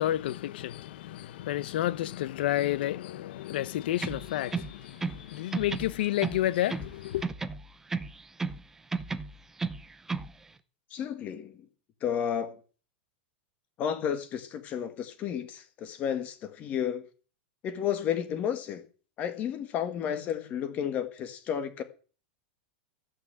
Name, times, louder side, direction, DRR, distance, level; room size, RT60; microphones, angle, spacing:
voice 1, 0.0-7.3, left 14 dB, 60° left, 0.8 m, -30 dB
sound 1, 3.9-5.3 5.5-6.9 7.2-8.6 8.9-10.3, right 4 dB, 5° right, 0.6 m, -34 dB
voice 2, 10.9-11.7 12.0-12.6 13.8-17.0 17.6-18.8 19.2-21.8, left 8 dB, 25° left, 1.6 m, -32 dB
14.5 x 6.0 x 8.8 m
supercardioid pair, 170°, 6 cm